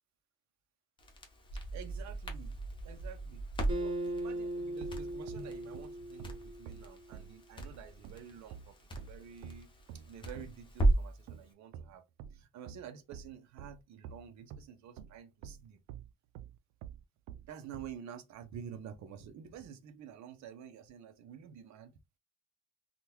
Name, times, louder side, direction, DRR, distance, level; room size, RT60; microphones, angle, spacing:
Crackle, 1.0-11.2, right 2 dB, 15° left, 0.6 m, -36 dB
voice 1, 1.5-9.7 10.1-12.0 12.3-15.8 17.5-21.9, right 8 dB, 55° right, 0.7 m, -49 dB
Acoustic guitar, 3.7-7.1, right 1 dB, 15° right, 1.1 m, -39 dB
sound 1, 4.8-14.7 15.0-18.0, right 8 dB, 90° right, 0.5 m, -48 dB
3.6 x 2.3 x 2.9 m
cardioid pair, 170°, 33 cm